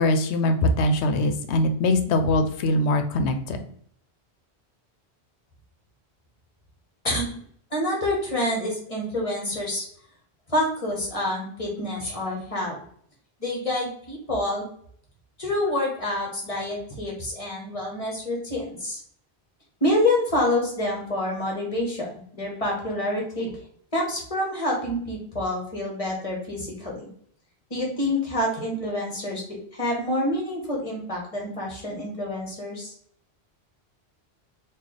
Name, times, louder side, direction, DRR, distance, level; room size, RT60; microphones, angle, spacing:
voice 1, 0.0-3.7, left 1 dB, 90° left, 7 dB, 0.9 m, -22 dB
voice 2, 7.0-7.4 7.7-9.9 10.5-12.8 13.4-14.7 15.4-19.0 19.8-23.5 23.9-27.1 27.7-32.9, left 1 dB, 35° left, -1 dB, 1.0 m, -27 dB
3.2 x 2.4 x 3.9 m, 0.62 s
omnidirectional pair, 1.1 m